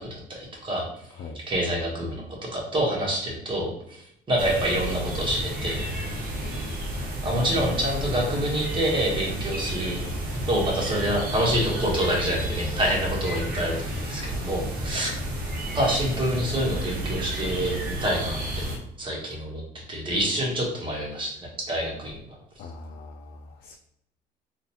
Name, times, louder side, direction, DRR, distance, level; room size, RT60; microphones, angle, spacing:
voice 1, 0.0-1.1 1.3-5.9 7.2-10.0 10.5-15.2 15.7-18.6 19.0-19.6 19.9-22.2, right 1 dB, 30° right, -2 dB, 1.3 m, -27 dB
sound 1, 4.4-18.8, equal, 60° right, 1.0 m, -31 dB
voice 2, 6.4-6.9 15.0-15.1 22.6-23.8, left 3 dB, 60° left, 2 dB, 0.5 m, -41 dB
3.8 x 2.5 x 2.9 m, 0.76 s
cardioid pair, 110°, 17 cm